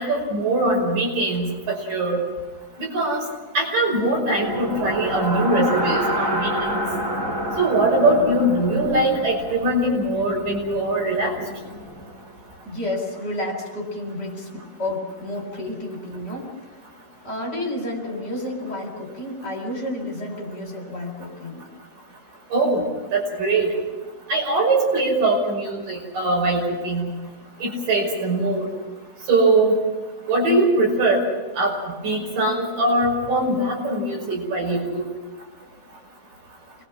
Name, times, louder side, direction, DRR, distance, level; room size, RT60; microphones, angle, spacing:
voice 1, 0.0-2.2 2.8-3.2 3.5-6.7 7.6-11.3 22.5-22.8 23.1-23.7 24.3-27.1 27.6-28.7 29.3-29.8 30.3-31.2 31.6-31.7 32.0-35.0, right 2 dB, 80° right, 0 dB, 7.4 m, -21 dB
sound 1, 4.3-12.3, equal, 25° right, 2.6 m, -28 dB
voice 2, 12.6-16.5 17.2-21.7, left 1 dB, 30° left, 1 dB, 4.2 m, -30 dB
28.0 x 21.0 x 6.0 m, 1.3 s
omnidirectional pair, 3.8 m